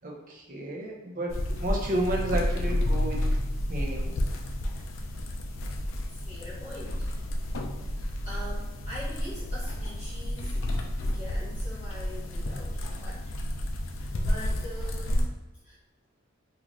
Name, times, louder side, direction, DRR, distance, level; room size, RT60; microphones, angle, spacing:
voice 1, 0.0-3.2 3.7-4.2, right 1 dB, 45° right, -2 dB, 0.8 m, -32 dB
sound 1, 1.3-15.3, left 1 dB, 80° left, 0.5 m, -30 dB
voice 2, 6.1-7.1 7.9-10.6 11.1-13.3 13.9-15.3 15.6-15.8, equal, 40° left, -11 dB, 1.1 m, -43 dB
3.8 x 2.4 x 3.1 m, 1.0 s
head